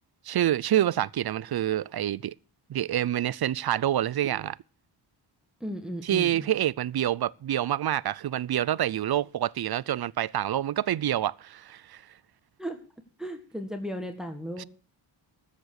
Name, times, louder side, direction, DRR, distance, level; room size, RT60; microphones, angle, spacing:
voice 1, 0.2-2.3 2.7-4.6 6.0-12.0 14.6-14.7, right 11 dB, 50° right, 0.5 m, -27 dB
voice 2, 5.6-6.5 12.6-12.8 13.2-14.7, equal, ahead, 1.8 m, -35 dB
13.5 x 7.6 x 6.6 m
cardioid pair, 70°, 49 cm